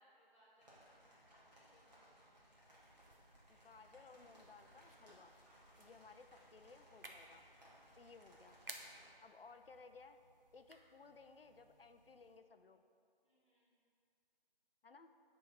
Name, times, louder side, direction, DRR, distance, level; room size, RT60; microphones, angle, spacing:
voice 1, 0.0-2.8 5.1-5.7 7.5-8.0 8.9-9.4 13.2-13.7, equal, 30° left, -8 dB, 1.4 m, -73 dB
Rain on tent, 0.6-9.0, equal, 45° right, 1.5 m, -65 dB
sound 1, 2.7-12.4, right 2 dB, 65° right, 0.8 m, -60 dB
voice 2, 3.5-5.3 5.8-7.4 8.0-8.6 9.2-10.2 10.5-12.8 14.8-15.1, left 4 dB, 70° left, 8 dB, 0.5 m, -60 dB
7.0 x 3.5 x 5.0 m, 2.4 s
figure-of-eight pair, 170°, 30 cm